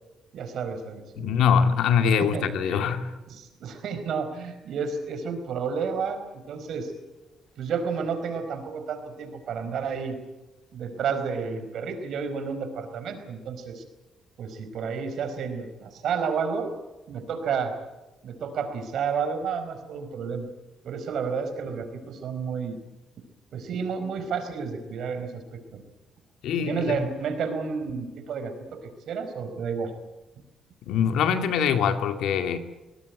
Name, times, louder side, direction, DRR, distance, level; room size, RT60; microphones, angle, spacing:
voice 1, 0.3-1.3 2.2-2.9 3.3-6.9 7.6-10.2 10.7-13.8 14.4-16.7 17.1-17.7 18.2-20.5 20.8-22.7 23.5-25.8 26.6-29.9, right 6 dB, 70° right, 8 dB, 4.7 m, -31 dB
voice 2, 1.2-3.1 26.4-27.0 30.9-32.6, left 7 dB, 85° left, 8 dB, 2.2 m, -23 dB
23.5 x 18.5 x 9.5 m, 1.1 s
cardioid pair, 90°, 0 cm